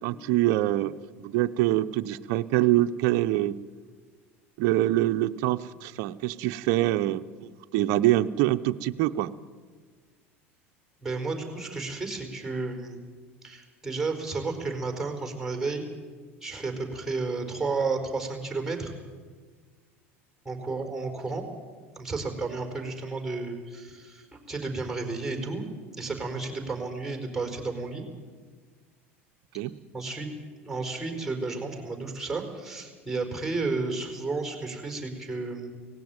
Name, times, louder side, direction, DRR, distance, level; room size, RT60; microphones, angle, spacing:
voice 1, 0.0-3.6 4.6-9.3 29.5-29.7, right 15 dB, 60° right, 11 dB, 0.8 m, -25 dB
voice 2, 11.0-13.1 13.4-15.8 16.4-18.9 20.4-21.4 22.0-25.6 25.9-28.0 29.9-30.3 30.6-35.7, right 3 dB, 5° right, 5 dB, 4.8 m, -32 dB
18.5 x 16.5 x 9.2 m, 1.5 s
hypercardioid pair, 80°, 7 cm